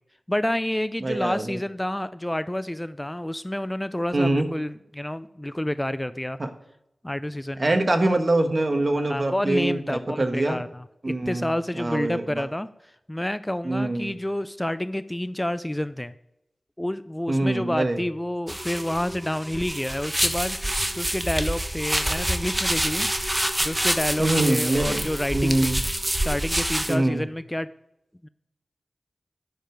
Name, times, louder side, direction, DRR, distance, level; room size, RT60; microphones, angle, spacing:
voice 1, 0.3-6.4 7.0-7.8 8.9-16.1 16.8-23.1 23.6-25.8 26.1-27.7 28.2-28.3, left 1 dB, 15° left, 13 dB, 0.4 m, -29 dB
voice 2, 1.0-1.6 4.1-4.5 7.6-10.6 11.0-12.4 13.6-14.1 17.3-18.0 24.2-25.1 25.3-25.8 26.9-27.3, right 2 dB, 45° right, 6 dB, 1.4 m, -24 dB
sound 1, 18.5-26.9, right 1 dB, 20° right, 1.2 m, -27 dB
10.5 x 6.8 x 4.6 m, 0.84 s
cardioid pair, 50°, 0 cm